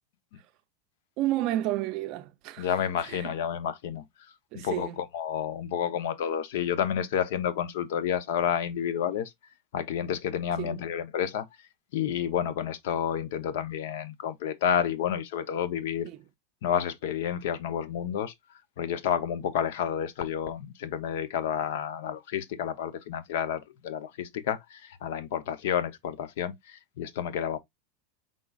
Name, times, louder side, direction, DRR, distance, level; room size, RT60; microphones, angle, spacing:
voice 1, 1.2-2.7 3.0-3.3 4.5-5.0 10.6-10.8 16.0-16.2, right 14 dB, 45° right, 0.5 m, -31 dB
voice 2, 2.6-4.0 4.5-9.3 9.7-11.5 11.9-16.1 16.6-18.3 18.8-27.6, left 9 dB, 65° left, 0.7 m, -30 dB
5.1 x 3.8 x 2.3 m
supercardioid pair, 160°, 0 cm